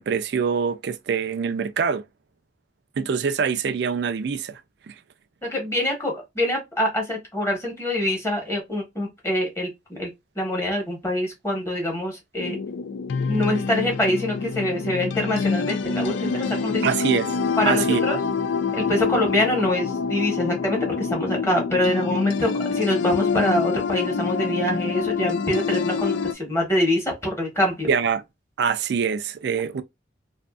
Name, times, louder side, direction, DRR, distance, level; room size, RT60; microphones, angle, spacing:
voice 1, 0.0-2.0 3.0-4.6 4.9-5.0 16.8-17.3 17.7-18.0 27.9-28.2 28.6-29.8, right 6 dB, 60° right, 0.3 m, -24 dB
voice 2, 5.4-10.1 10.4-12.6 13.3-16.9 17.6-18.2 18.7-27.9, left 1 dB, 15° left, 1.1 m, -25 dB
sound 1, 12.4-26.3, left 5 dB, 75° left, 0.3 m, -26 dB
2.7 x 2.5 x 2.3 m
head